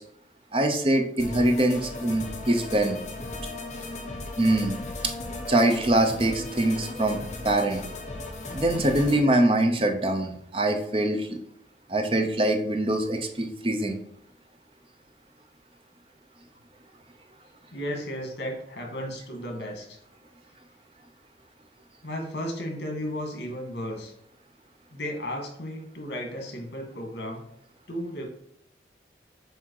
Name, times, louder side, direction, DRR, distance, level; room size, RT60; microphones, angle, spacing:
voice 1, 0.5-3.0 4.4-4.8 5.5-7.2 7.4-7.8 8.5-11.4 11.9-14.0, right 1 dB, 30° right, 4 dB, 0.7 m, -23 dB
sound 1, 1.2-9.2, left 2 dB, 40° left, 1.1 m, -37 dB
voice 2, 17.7-20.0 22.0-24.1 24.9-27.4 27.9-28.2, equal, 75° left, 1 dB, 1.8 m, -34 dB
7.4 x 2.8 x 4.7 m, 0.74 s
head